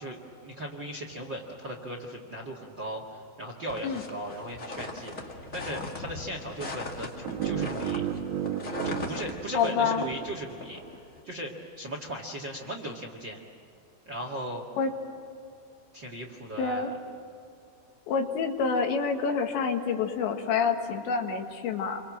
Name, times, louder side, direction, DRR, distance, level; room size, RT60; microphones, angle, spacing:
voice 1, 0.0-8.0 8.8-10.8 11.2-13.4 14.0-14.6 15.9-16.9, right 1 dB, 40° right, 2 dB, 1.7 m, -38 dB
sound 1, 3.7-11.2, left 2 dB, 35° left, 1.4 m, -39 dB
sound 2, 7.2-10.3, right 10 dB, 80° right, 3.4 m, -33 dB
voice 2, 9.5-10.1 14.8-14.9 16.6-16.9 18.1-22.0, left 5 dB, 75° left, 4 dB, 4.1 m, -27 dB
29.5 x 24.5 x 7.4 m, 2.6 s
omnidirectional pair, 5.2 m